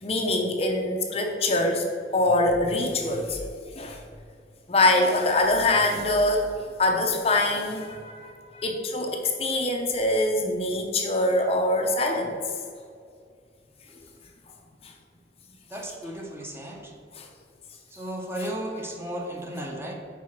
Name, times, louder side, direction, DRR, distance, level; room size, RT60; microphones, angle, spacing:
voice 1, 0.0-1.8 2.1-3.4 3.8-4.0 4.7-6.5 6.8-12.3 14.8-14.9 17.1-17.3, left 2 dB, 30° left, 2 dB, 0.6 m, -24 dB
voice 2, 15.7-16.9 17.9-20.0, right 1 dB, 15° right, 0 dB, 0.7 m, -35 dB
4.8 x 4.7 x 5.8 m, 2.3 s
head